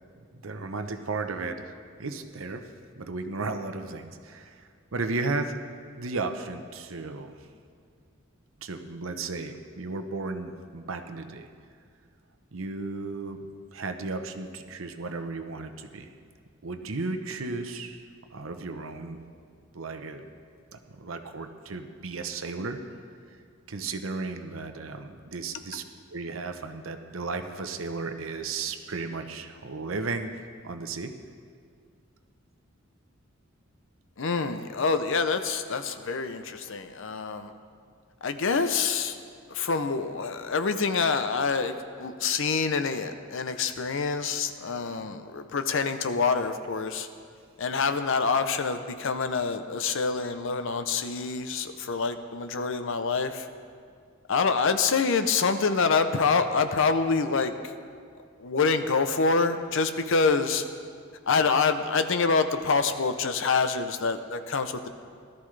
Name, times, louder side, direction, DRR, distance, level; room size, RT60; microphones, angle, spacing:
voice 1, 0.3-2.6 3.0-5.5 6.0-7.3 8.6-11.5 12.5-13.4 13.7-16.1 16.6-19.2 19.7-20.3 20.9-22.8 23.7-25.8 26.1-30.3 30.6-31.1, right 3 dB, 70° right, 7 dB, 0.8 m, -34 dB
voice 2, 34.2-37.5 38.2-39.2 39.5-47.1 47.6-53.5 54.3-57.5 58.4-60.6 61.3-64.9, left 4 dB, 65° left, 9 dB, 0.7 m, -26 dB
17.5 x 13.0 x 3.3 m, 2.2 s
head